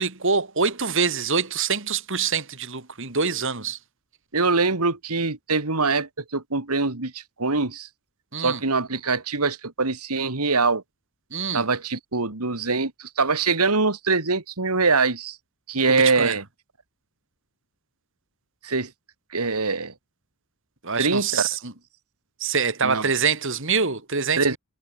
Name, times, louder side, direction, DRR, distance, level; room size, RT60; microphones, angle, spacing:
voice 1, 0.0-3.8 8.3-8.6 11.3-11.6 15.9-16.3 20.8-21.7 22.4-24.6, right 5 dB, 60° right, 3.1 m, -25 dB
voice 2, 4.3-7.9 8.4-10.8 11.5-15.4 15.7-16.4 18.6-18.9 19.3-19.9 21.0-21.5 22.8-23.1 24.4-24.6, right 4 dB, 85° right, 2.5 m, -23 dB
head